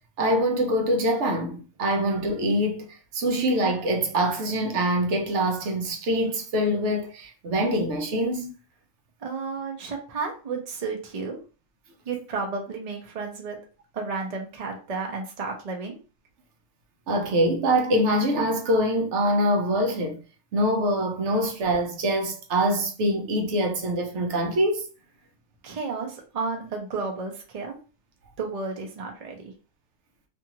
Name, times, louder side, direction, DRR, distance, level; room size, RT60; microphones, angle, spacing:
voice 1, 0.2-8.5 17.1-20.2 20.5-24.9, equal, 65° right, 0.9 m, -24 dB
voice 2, 9.2-11.4 12.1-13.6 13.9-16.0 25.6-27.8 28.4-29.5, right 4 dB, 45° right, 0.5 m, -32 dB
2.6 x 2.4 x 2.8 m
omnidirectional pair, 1.4 m